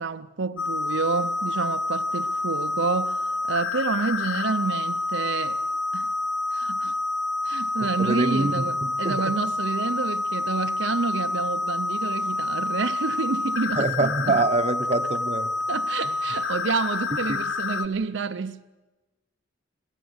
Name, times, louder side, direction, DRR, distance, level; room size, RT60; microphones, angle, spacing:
voice 1, 0.0-5.6 5.9-6.1 6.5-6.9 7.4-14.4 15.7-18.6, right 4 dB, 70° right, 0.6 m, -29 dB
sound 1, 0.6-17.9, left 2 dB, 85° left, 0.9 m, -28 dB
voice 2, 7.8-9.3 13.8-15.5 16.1-16.2 17.3-17.4, right 3 dB, 35° right, 0.8 m, -25 dB
25.5 x 15.5 x 8.0 m
head